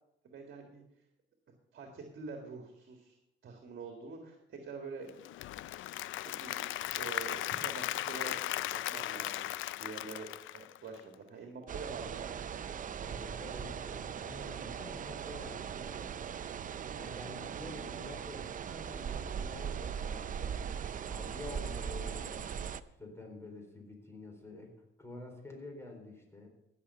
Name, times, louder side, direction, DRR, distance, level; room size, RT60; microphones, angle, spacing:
voice 1, 0.2-0.8 1.7-3.2 3.4-5.1 6.2-9.5 9.8-12.4, right 4 dB, 60° right, 3 dB, 1.9 m, -46 dB
Applause / Crowd, 5.1-11.1, left 15 dB, 80° left, 0.4 m, -37 dB
sound 1, 11.7-22.8, right 7 dB, 40° right, 0.5 m, -39 dB
voice 2, 13.0-16.1 17.0-20.6 21.1-22.5 23.0-26.5, left 2 dB, 15° left, 2 dB, 4.1 m, -48 dB
16.0 x 6.6 x 5.5 m, 0.85 s
cardioid pair, 90°, 20 cm